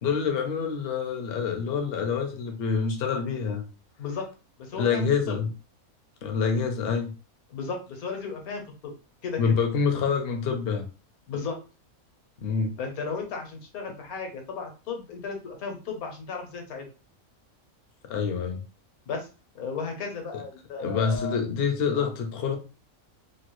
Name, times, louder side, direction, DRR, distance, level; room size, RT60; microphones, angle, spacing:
voice 1, 0.0-3.7 4.7-5.5 6.2-7.1 9.4-10.9 12.4-12.7 18.0-18.6 20.3-20.4 20.8-22.6, left 6 dB, 55° left, 4 dB, 0.7 m, -26 dB
voice 2, 4.6-5.3 7.5-8.9 9.2-9.5 11.3-11.6 12.8-16.9 19.1-19.3 19.5-21.4 22.0-22.1, left 5 dB, 75° left, 3 dB, 1.3 m, -35 dB
3.0 x 2.3 x 3.0 m, 0.32 s
omnidirectional pair, 1.5 m